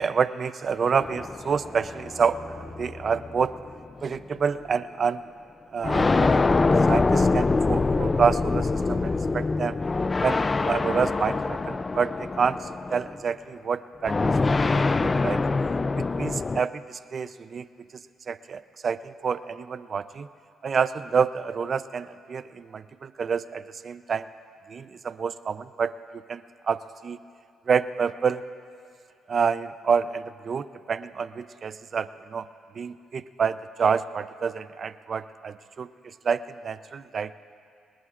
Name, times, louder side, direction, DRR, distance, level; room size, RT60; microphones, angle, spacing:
voice 1, 0.0-3.5 4.0-5.2 5.7-9.8 10.2-12.6 12.9-14.3 14.6-15.4 16.0-17.7 18.3-20.3 20.6-24.3 24.7-25.9 26.3-26.4 26.7-27.2 27.7-28.4 29.3-32.5 32.8-35.9 36.2-37.3, right 6 dB, 45° right, 14 dB, 0.5 m, -28 dB
sound 1, 1.0-3.7 4.6-4.7 5.8-13.2 14.0-16.6, left 3 dB, 25° left, 0.4 m, -24 dB
25.5 x 20.0 x 2.5 m, 2.3 s
cardioid pair, 90°, 0 cm